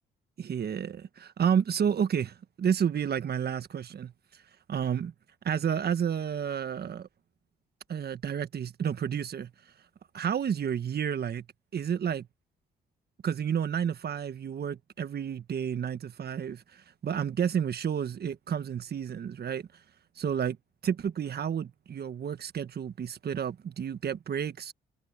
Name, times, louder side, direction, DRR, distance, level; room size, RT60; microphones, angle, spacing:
voice 1, 0.4-4.1 4.7-5.1 5.4-7.1 7.9-9.5 10.1-11.4 11.7-12.3 13.2-19.8 20.2-20.6 20.8-24.7, right 8 dB, 50° right, 1.4 m, -30 dB
supercardioid pair, 55°, 20 cm